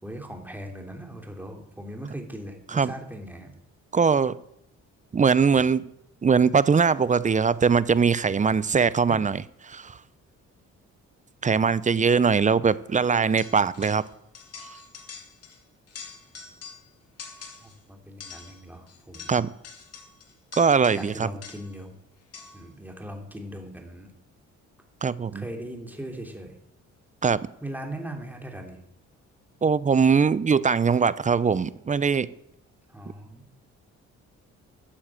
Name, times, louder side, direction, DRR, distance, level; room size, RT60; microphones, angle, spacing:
voice 1, 0.0-3.5 17.6-19.4 20.9-21.9 22.5-24.1 25.3-26.6 27.6-28.8 32.9-33.5, right 1 dB, 5° right, 2 dB, 3.0 m, -39 dB
voice 2, 3.9-4.4 5.1-5.8 6.2-9.4 9.6-10.0 11.4-14.0 19.3-19.5 20.6-21.3 25.0-25.4 27.2-27.4 29.6-32.3, right 5 dB, 25° right, 18 dB, 0.6 m, -21 dB
sound 1, 13.4-14.1 14.3-15.6 15.9-16.9 17.2-17.8 18.2-21.8 22.3-22.7, left 5 dB, 55° left, 2.4 m, -45 dB
13.0 x 7.3 x 7.5 m, 0.75 s
cardioid pair, 90°, 30 cm